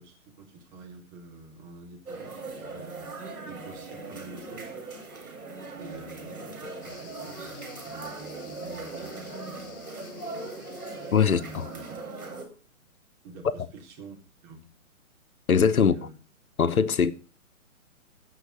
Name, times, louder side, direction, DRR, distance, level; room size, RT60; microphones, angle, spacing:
voice 1, 0.0-4.7 5.8-10.0 10.4-10.5 11.2-12.4 13.2-14.2 14.4-14.7 15.8-16.1, right 3 dB, 30° right, 3.7 m, -47 dB
sound 1, 2.1-12.4, right 3 dB, 80° right, 5.3 m, -39 dB
sound 2, 6.8-11.9, left 5 dB, 45° left, 3.8 m, -52 dB
voice 2, 11.1-11.6 15.5-15.9 16.6-17.1, left 6 dB, 75° left, 1.0 m, -21 dB
16.0 x 5.8 x 4.9 m
figure-of-eight pair, 135°, 43 cm